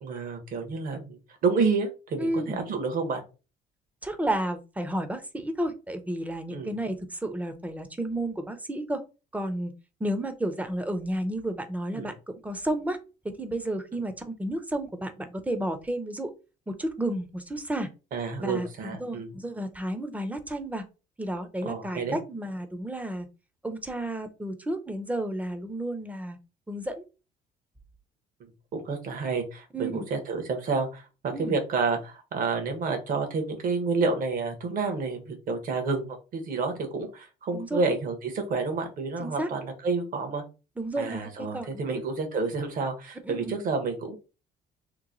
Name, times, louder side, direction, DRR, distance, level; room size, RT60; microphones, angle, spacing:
voice 1, 0.0-3.2 6.5-6.7 11.9-12.1 18.1-19.3 21.6-22.2 28.7-36.1 36.3-40.4 41.0-44.2, right 4 dB, 55° right, 5 dB, 1.1 m, -29 dB
voice 2, 2.2-2.6 4.0-9.0 9.3-9.7 10.0-13.0 13.4-16.3 16.7-17.9 18.4-20.8 21.2-23.3 23.6-26.4 26.7-27.0 29.7-30.0 31.3-31.5 37.5-37.8 39.2-39.5 40.8-42.0 43.2-43.5, right 1 dB, 10° right, 8 dB, 0.6 m, -32 dB
3.0 x 2.1 x 3.8 m, 0.31 s
cardioid pair, 110°, 17 cm